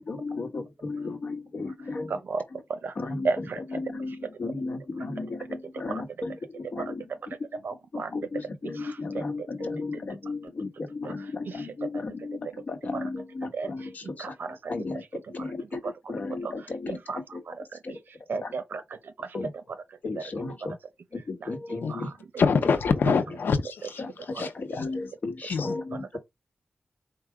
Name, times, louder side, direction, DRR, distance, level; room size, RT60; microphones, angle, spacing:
voice 1, 0.0-2.2 2.5-2.6 3.0-7.6 7.9-17.4 17.8-18.5 19.3-19.5 20.0-20.7 21.1-22.1 24.0-26.2, left 3 dB, 55° left, 1.2 m, -35 dB
voice 2, 2.1-2.4 2.7-3.0 3.2-3.6 5.5-5.6 5.9-6.0 6.7-6.9 7.6-8.1 8.8-9.5 11.0-11.1 11.4-11.7 11.9-12.0 13.5-13.7 14.0-14.7 15.8-15.9 16.4-16.5 16.9-17.2 17.5-18.0 18.3-19.4 20.2-20.3 21.4-22.1, right 4 dB, 80° right, 0.7 m, -34 dB
voice 3, 22.4-24.5 24.8-24.9 25.5-25.8, left 5 dB, 90° left, 0.8 m, -25 dB
4.7 x 2.3 x 4.8 m
wide cardioid pair, 105°, 3 cm